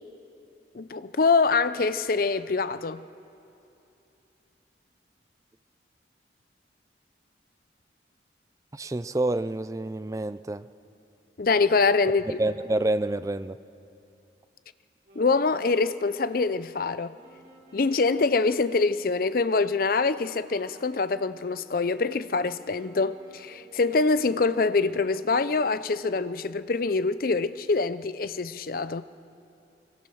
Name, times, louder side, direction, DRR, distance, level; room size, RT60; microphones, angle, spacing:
voice 1, 0.7-3.0 11.4-12.2 15.2-17.1 17.7-29.0, left 4 dB, 50° left, 0.5 m, -25 dB
voice 2, 8.7-10.7 12.3-13.6, right 2 dB, 15° right, 0.4 m, -28 dB
Wind instrument woodwind instrument, 15.0-26.0, equal, 55° right, 3.1 m, -55 dB
22.5 x 20.0 x 6.3 m
head